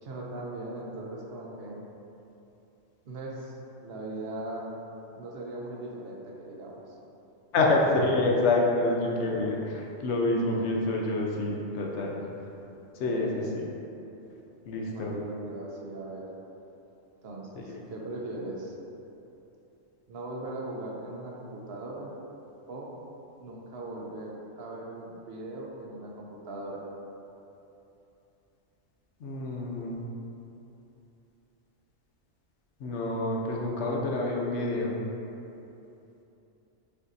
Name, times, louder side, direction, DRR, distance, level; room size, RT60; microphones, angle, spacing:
voice 1, 0.0-1.8 3.0-3.6 3.8-4.8 5.2-7.0 12.2-12.3 13.1-13.6 14.9-16.3 17.2-18.7 20.1-22.1 22.7-22.9 23.4-26.8, right 2 dB, 60° right, -2 dB, 0.8 m, -39 dB
voice 2, 7.5-12.2 13.0-13.4 14.7-15.1 17.6-17.8 29.2-30.0 32.8-35.0, left 2 dB, 65° left, -1 dB, 0.9 m, -27 dB
6.6 x 2.6 x 2.6 m, 2.9 s
omnidirectional pair, 1.3 m